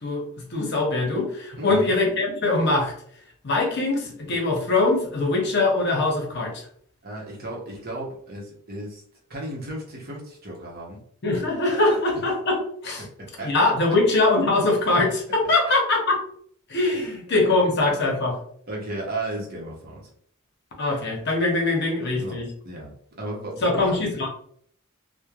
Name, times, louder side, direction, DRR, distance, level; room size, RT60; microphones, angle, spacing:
voice 1, 0.5-2.9 3.4-6.5 11.2-13.0 13.4-16.2 16.7-18.4 20.8-22.5 23.6-24.3, left 2 dB, 55° left, 0 dB, 0.7 m, -22 dB
voice 2, 1.6-1.9 4.2-4.4 7.0-9.0 9.3-11.0 13.0-13.7 15.4-15.7 16.9-17.1 17.6-17.7 18.7-20.1 22.2-22.9 23.2-24.3, right 1 dB, 50° right, -3 dB, 0.8 m, -35 dB
3.0 x 2.1 x 2.3 m, 0.62 s
head